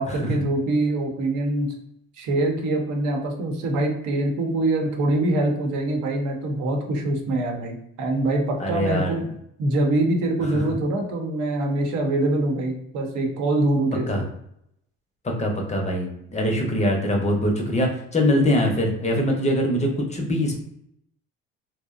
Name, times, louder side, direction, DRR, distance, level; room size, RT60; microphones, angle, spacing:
voice 1, 0.0-1.7 2.2-9.2 9.6-14.2, right 2 dB, 70° right, 1 dB, 0.8 m, -24 dB
voice 2, 8.6-9.2 10.4-10.6 14.1-14.2 15.2-20.6, equal, 20° left, 1 dB, 0.6 m, -23 dB
2.6 x 2.0 x 2.4 m, 0.76 s
supercardioid pair, 85°, 31 cm